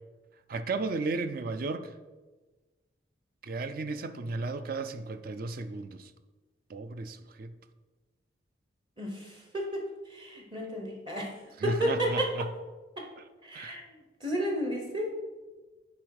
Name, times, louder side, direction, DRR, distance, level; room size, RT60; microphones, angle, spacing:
voice 1, 0.5-1.9 3.4-6.1 6.7-7.5 11.6-12.5 13.2-13.3 13.5-13.8, right 3 dB, 50° right, 0.4 m, -34 dB
voice 2, 9.0-11.3 11.6-12.6 13.0-13.1 13.4-14.0 14.2-15.1, equal, 25° right, 0.9 m, -32 dB
9.7 x 4.3 x 4.8 m
head